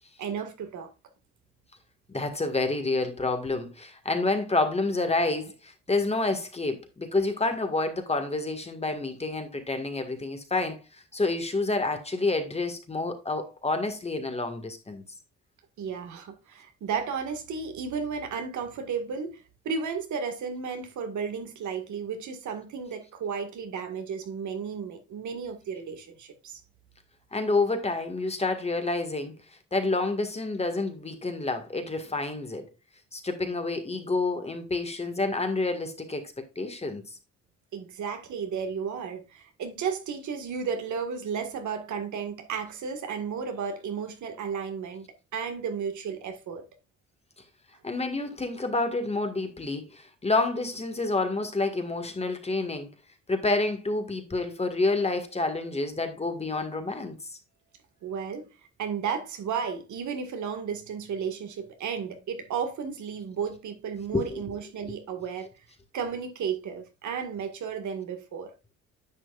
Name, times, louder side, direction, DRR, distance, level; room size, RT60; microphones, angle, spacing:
voice 1, 0.2-0.9 15.8-26.6 37.7-45.1 45.3-46.6 58.0-58.5 58.8-65.5 65.9-68.5, right 6 dB, 70° right, 1.9 m, -33 dB
voice 2, 2.1-10.8 11.1-15.0 27.3-29.3 29.7-32.7 33.1-37.0 47.8-52.9 53.3-57.2 64.1-64.4, left 3 dB, 20° left, 1.9 m, -28 dB
10.0 x 6.1 x 2.5 m
cardioid pair, 90°, 30 cm